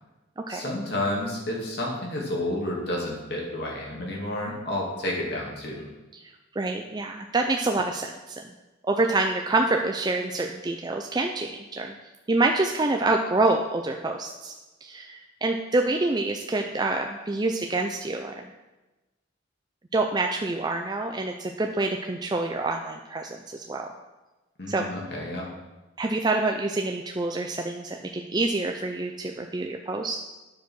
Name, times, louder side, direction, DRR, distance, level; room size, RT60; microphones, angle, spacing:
voice 1, 0.5-5.8 24.6-25.5, left 1 dB, 55° left, -2 dB, 2.3 m, -30 dB
voice 2, 6.6-8.4 8.8-11.9 12.3-14.5 14.8-18.5 19.9-23.9 24.7-24.8 26.0-30.4, right 2 dB, 20° right, 2 dB, 0.4 m, -27 dB
9.2 x 4.9 x 6.2 m, 1.1 s
head